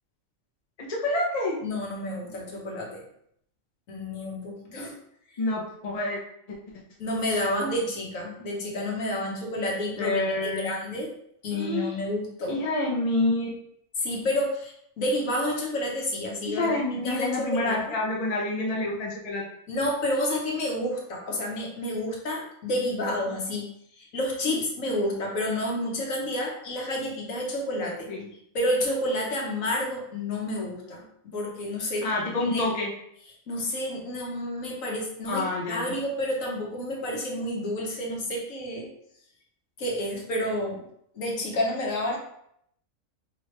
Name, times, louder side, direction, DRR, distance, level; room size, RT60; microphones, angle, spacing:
voice 1, 0.9-1.6 5.4-6.2 10.0-10.7 11.5-12.0 12.5-13.5 16.5-19.4 24.5-24.6 28.1-28.3 32.0-32.9 35.3-35.9, left 2 dB, 35° left, -2 dB, 0.8 m, -27 dB
voice 2, 1.6-2.9 3.9-4.9 7.0-11.1 11.4-12.6 14.0-16.7 17.0-17.8 19.7-23.6 24.0-28.1 28.5-32.1 32.5-32.6 33.5-38.9 39.8-40.8 41.1-42.2, left 1 dB, 75° left, -1 dB, 1.4 m, -29 dB
4.7 x 3.1 x 3.2 m, 0.72 s
omnidirectional pair, 1.4 m